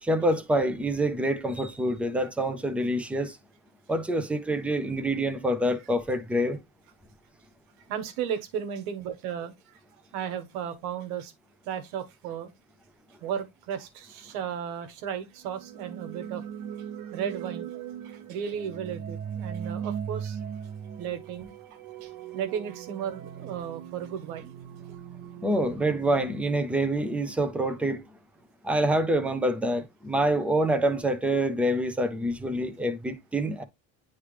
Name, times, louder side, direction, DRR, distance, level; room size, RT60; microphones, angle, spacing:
voice 1, 0.0-3.4 3.9-6.6 25.4-28.0 28.6-33.6, right 1 dB, 5° right, 0.4 m, -26 dB
voice 2, 7.9-9.8 10.1-11.3 11.6-12.5 13.2-16.4 17.0-20.4 21.0-21.5 22.0-24.5 31.3-31.4, right 8 dB, 90° right, 1.3 m, -35 dB
sound 1, 15.4-27.3, right 8 dB, 50° right, 0.8 m, -39 dB
9.7 x 3.3 x 3.2 m
cardioid pair, 165°, 42 cm